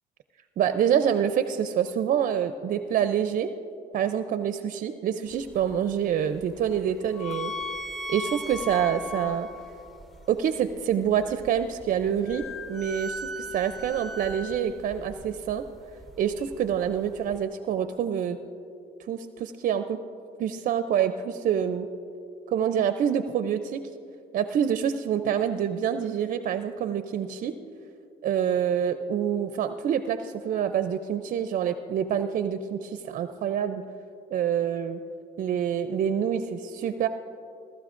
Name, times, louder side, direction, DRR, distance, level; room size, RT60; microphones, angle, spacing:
voice 1, 0.6-3.5 3.9-7.5 8.1-9.5 10.3-15.6 16.2-18.4 19.1-20.0 20.4-21.9 22.5-23.8 24.3-27.5 28.2-33.8 34.3-35.0 35.4-37.1, right 8 dB, 50° right, 9 dB, 0.5 m, -26 dB
sound 1, 5.3-17.4, left 1 dB, ahead, 0.6 m, -39 dB
18.5 x 13.0 x 2.5 m, 2.6 s
cardioid pair, 110°, 17 cm